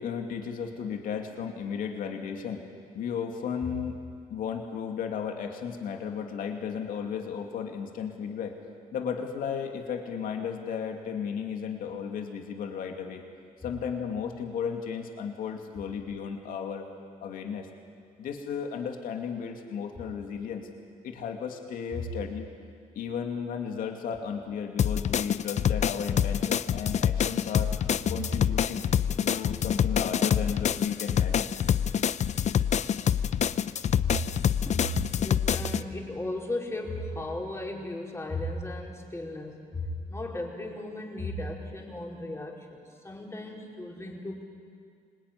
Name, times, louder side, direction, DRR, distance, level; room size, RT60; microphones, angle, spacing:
voice 1, 0.0-2.6 2.9-4.0 4.3-8.6 8.9-13.2 13.6-16.9 17.2-17.7 18.2-20.7 21.0-22.5 22.9-27.7 28.1-28.8 29.2-31.5, left 7 dB, 80° left, 3 dB, 2.6 m, -34 dB
sound 1, 24.8-35.8, left 9 dB, 55° left, 0.7 m, -26 dB
voice 2, 34.7-44.4, left 1 dB, 20° left, -1 dB, 4.9 m, -35 dB
26.0 x 20.5 x 9.8 m, 2.2 s
cardioid pair, 85°, 14 cm